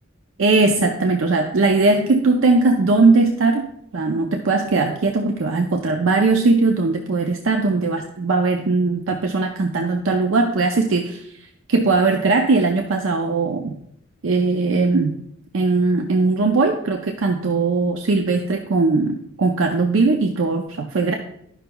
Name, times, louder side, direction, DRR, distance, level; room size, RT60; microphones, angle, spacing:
voice 1, 0.4-3.7 3.9-11.2 11.7-13.7 14.2-15.2 15.5-21.1, right 3 dB, 70° right, 3 dB, 0.5 m, -19 dB
11.5 x 5.7 x 2.3 m, 0.72 s
head